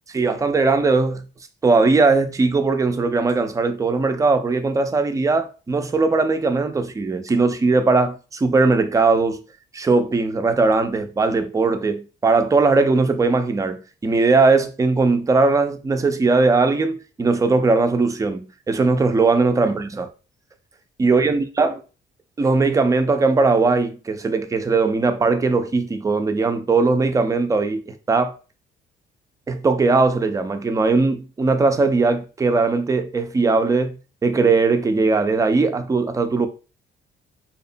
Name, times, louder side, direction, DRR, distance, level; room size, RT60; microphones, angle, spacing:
voice 1, 0.1-1.2 1.6-9.4 9.7-20.1 21.0-21.8 22.4-28.4 29.5-36.5, right 3 dB, 15° right, 0.4 m, -19 dB
2.7 x 2.0 x 2.6 m
cardioid pair, 90°, 20 cm